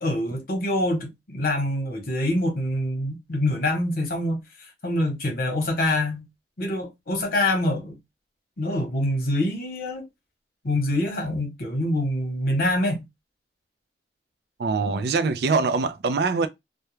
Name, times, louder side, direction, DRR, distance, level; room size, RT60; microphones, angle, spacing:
voice 1, 0.0-4.4 4.8-6.3 6.6-8.0 8.6-10.0 10.6-13.0, left 1 dB, 50° left, 0.9 m, -25 dB
voice 2, 14.6-16.5, right 4 dB, 60° right, 0.4 m, -23 dB
2.3 x 2.1 x 3.0 m
head